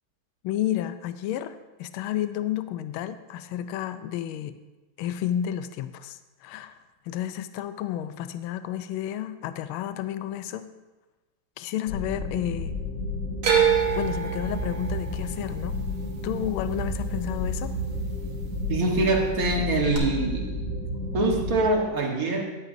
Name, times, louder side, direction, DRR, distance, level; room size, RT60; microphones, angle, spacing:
voice 1, 0.4-4.5 5.0-6.8 7.0-10.7 11.6-12.8 13.9-15.8 16.2-17.7, left 11 dB, 75° left, 11 dB, 1.4 m, -31 dB
sound 1, 11.9-21.6, left 1 dB, 50° left, 3.8 m, -31 dB
sound 2, 13.4-17.6 17.9-18.6 19.9-20.0, right 8 dB, 90° right, 2.3 m, -26 dB
voice 2, 18.7-20.6 21.1-22.5, right 2 dB, 45° right, 1 dB, 1.6 m, -24 dB
14.0 x 10.5 x 2.6 m, 1.2 s
omnidirectional pair, 2.4 m